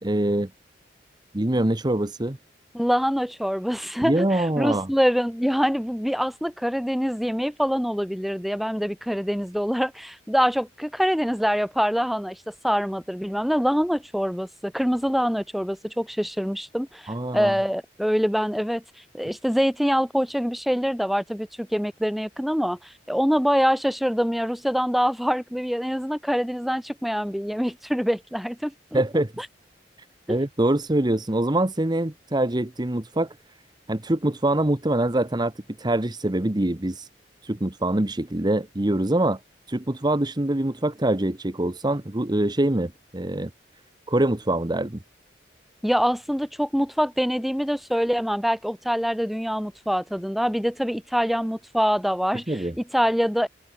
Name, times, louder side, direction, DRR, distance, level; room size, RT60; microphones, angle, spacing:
voice 1, 0.0-0.5 1.3-2.4 4.0-4.9 17.1-17.5 28.9-29.3 30.3-33.3 33.9-35.5 35.8-37.1 37.4-39.4 39.7-43.5 44.1-45.0 52.5-52.7, right 1 dB, 25° right, 1.1 m, -24 dB
voice 2, 2.7-18.8 19.1-29.0 29.4-29.5 30.3-30.4 45.8-52.6 52.9-53.5, equal, ahead, 2.5 m, -25 dB
head